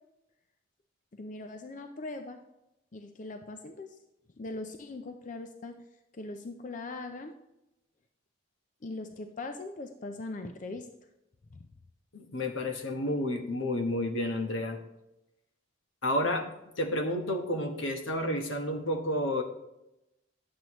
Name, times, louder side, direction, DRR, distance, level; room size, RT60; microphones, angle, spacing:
voice 1, 1.1-2.4 2.9-4.0 4.4-5.8 6.1-7.3 8.8-10.9, left 2 dB, 40° left, 6 dB, 0.5 m, -40 dB
voice 2, 12.1-14.8 16.0-16.5 16.8-19.4, left 1 dB, 80° left, 5 dB, 1.1 m, -30 dB
10.0 x 7.7 x 3.0 m, 0.91 s
head